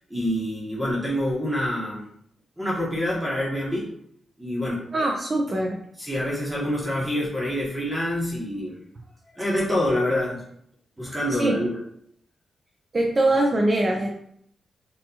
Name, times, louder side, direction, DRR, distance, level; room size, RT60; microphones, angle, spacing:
voice 1, 0.1-2.0 2.6-3.9 4.4-4.8 6.0-8.8 9.4-10.4 11.0-11.8, left 1 dB, 10° right, -5 dB, 1.1 m, -26 dB
voice 2, 4.9-5.8 11.3-11.6 12.9-14.2, right 1 dB, 30° right, 0 dB, 0.5 m, -22 dB
6.6 x 2.5 x 2.8 m, 0.69 s
wide cardioid pair, 145°, 0 cm